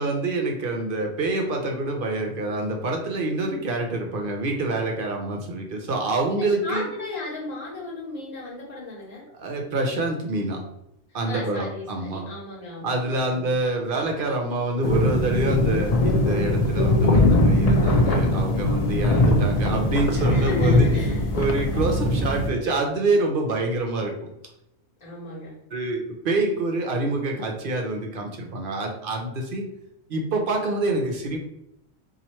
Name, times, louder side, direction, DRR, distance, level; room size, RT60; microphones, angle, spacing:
voice 1, 0.0-6.9 9.3-10.6 11.1-12.3 12.8-20.9 21.4-24.3 25.7-29.7 30.1-31.4, right 2 dB, 60° right, 2 dB, 0.6 m, -26 dB
voice 2, 6.4-9.2 11.2-13.6 19.5-21.3 25.0-25.5, left 2 dB, 35° left, -6 dB, 1.3 m, -35 dB
sound 1, 14.8-22.5, left 1 dB, 70° left, 0.3 m, -21 dB
2.9 x 2.4 x 4.2 m, 0.82 s
omnidirectional pair, 1.3 m